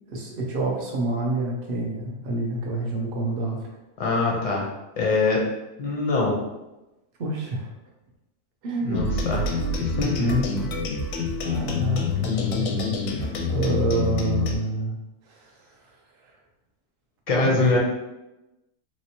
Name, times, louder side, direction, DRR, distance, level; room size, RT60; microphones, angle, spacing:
voice 1, 0.1-3.6 7.2-7.7 8.6-9.1 10.2-10.7 11.4-12.9 13.1-15.0 17.3-17.6, right 2 dB, 50° right, -1 dB, 0.7 m, -27 dB
voice 2, 4.0-4.7 5.0-5.4 5.8-6.4 8.8-9.4 9.8-10.5 12.2-12.5 17.3-17.8, left 3 dB, 40° left, -2 dB, 0.7 m, -24 dB
sound 1, 8.9-14.6, left 3 dB, 70° left, 0.9 m, -27 dB
3.2 x 3.0 x 2.8 m, 0.98 s
omnidirectional pair, 1.6 m